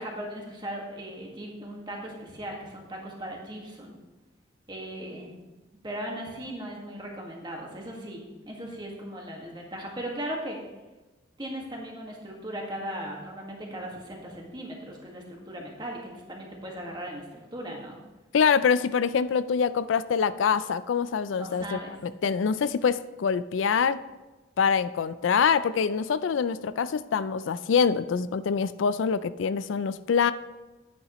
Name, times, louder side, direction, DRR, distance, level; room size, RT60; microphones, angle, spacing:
voice 1, 0.0-4.0 4.7-5.4 5.8-10.6 11.4-18.0 21.3-22.0, right 1 dB, 25° right, -1 dB, 1.7 m, -38 dB
voice 2, 18.3-24.0 24.6-30.3, left 6 dB, 90° left, 15 dB, 0.4 m, -25 dB
11.0 x 9.6 x 3.1 m, 1.2 s
head